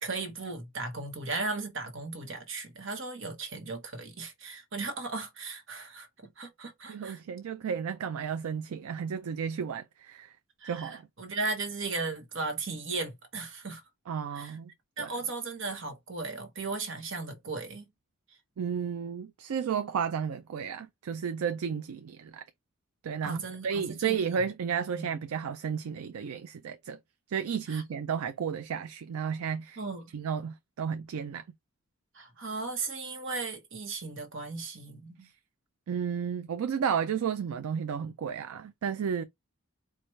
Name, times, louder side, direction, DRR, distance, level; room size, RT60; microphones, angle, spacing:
voice 1, 0.0-6.1 6.4-7.2 10.6-13.8 14.3-14.6 15.0-17.8 23.2-24.2 24.9-25.1 27.7-27.8 29.8-30.1 32.1-35.3, right 3 dB, 60° right, 1.0 m, -36 dB
voice 2, 6.9-10.3 10.6-11.0 14.1-14.7 15.0-15.1 18.6-22.4 23.0-27.0 27.3-29.8 30.1-31.4 35.2-35.3 35.9-39.2, right 7 dB, 85° right, 0.4 m, -33 dB
4.6 x 2.3 x 3.1 m
head